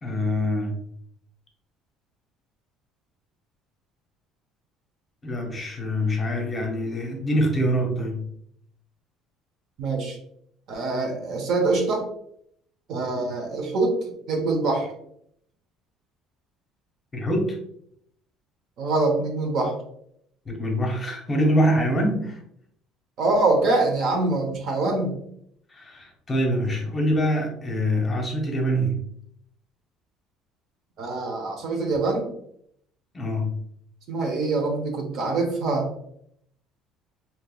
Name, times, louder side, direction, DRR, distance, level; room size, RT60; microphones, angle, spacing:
voice 1, 0.0-0.8 5.2-8.3 17.1-17.6 20.4-22.4 25.7-29.0 33.1-33.6, equal, 20° left, 1 dB, 0.7 m, -24 dB
voice 2, 9.8-10.2 10.7-12.1 12.9-14.0 14.3-14.9 18.8-19.8 23.2-25.1 31.0-32.3 34.1-35.9, right 3 dB, 55° right, 2 dB, 0.8 m, -24 dB
3.4 x 2.9 x 2.3 m, 0.70 s
cardioid pair, 145°, 0 cm